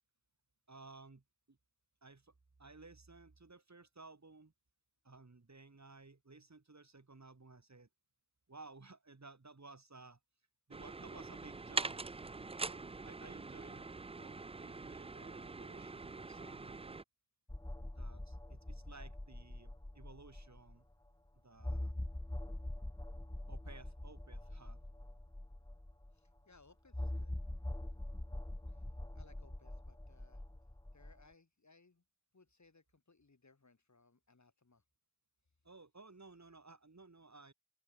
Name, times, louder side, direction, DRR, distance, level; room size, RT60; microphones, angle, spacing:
voice 1, 0.7-1.6 2.0-2.3 2.6-4.5 5.0-7.9 8.5-10.2 10.7-12.0 12.5-13.9 14.2-17.0 18.0-20.9 21.4-21.9 23.5-24.8 35.6-37.5, right 3 dB, 40° right, 4.8 m, -57 dB
sound 1, 10.7-17.0, right 3 dB, 15° right, 0.4 m, -43 dB
sound 2, 17.5-20.7 21.1-21.2 21.6-26.1 26.9-31.2, left 1 dB, 10° left, 1.5 m, -44 dB
voice 2, 26.1-27.4 28.7-28.8 29.1-30.4 30.9-32.0 32.3-34.8, left 3 dB, 40° left, 3.2 m, -66 dB
open air
cardioid pair, 45°, 44 cm